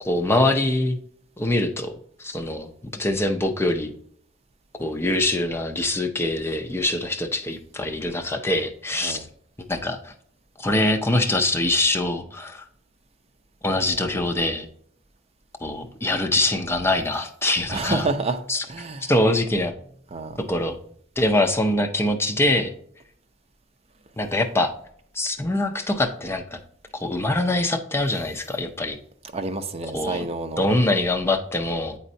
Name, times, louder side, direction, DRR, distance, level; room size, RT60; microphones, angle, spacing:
voice 1, 0.0-1.0 1.4-3.9 4.8-9.3 9.7-10.1 10.6-12.6 13.6-14.7 15.6-18.1 18.5-18.6 19.0-19.7 20.4-20.8 21.2-22.7 24.2-24.7 25.1-26.6 26.9-29.0 29.9-30.3 30.6-32.0, left 1 dB, 15° left, 0.5 m, -24 dB
voice 2, 17.7-18.4 18.7-19.1 20.1-20.4 29.3-30.7, right 3 dB, 35° right, 0.6 m, -28 dB
8.9 x 4.2 x 2.7 m
head